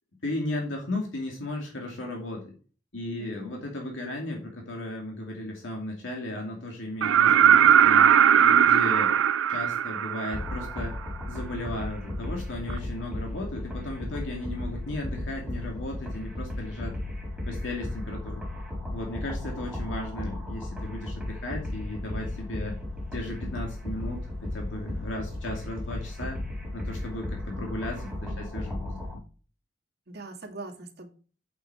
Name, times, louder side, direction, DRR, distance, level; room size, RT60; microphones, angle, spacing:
voice 1, 0.2-2.5 2.9-8.1 8.4-9.2 9.5-10.9 11.3-17.0 17.5-18.4 18.9-22.8 23.1-26.4 26.7-29.2, left 1 dB, 75° left, 0 dB, 2.5 m, -35 dB
voice 2, 3.2-3.6 28.0-28.5 30.1-31.1, right 2 dB, 55° right, 1 dB, 2.2 m, -42 dB
sound 1, 7.0-10.8 12.7-12.8, right 9 dB, 85° right, 0.4 m, -19 dB
sound 2, 10.3-29.1, left 1 dB, ahead, 4.4 m, -35 dB
8.5 x 7.5 x 4.4 m, 0.38 s
head